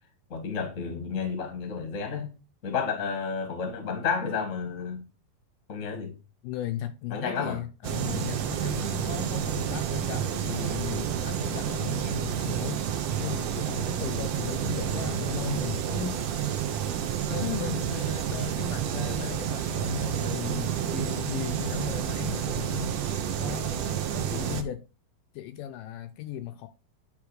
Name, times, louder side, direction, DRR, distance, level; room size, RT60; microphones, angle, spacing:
voice 1, 0.3-2.3 2.6-5.0 5.7-6.1 7.1-7.6 11.3-11.6 17.7-17.8, left 5 dB, 40° left, 1.0 m, -31 dB
voice 2, 6.4-12.8 13.2-16.3 17.3-24.9 25.3-26.7, left 11 dB, 80° left, 2.0 m, -37 dB
sound 1, 7.8-24.6, right 9 dB, 80° right, 1.5 m, -30 dB
9.7 x 3.5 x 4.8 m
omnidirectional pair, 4.1 m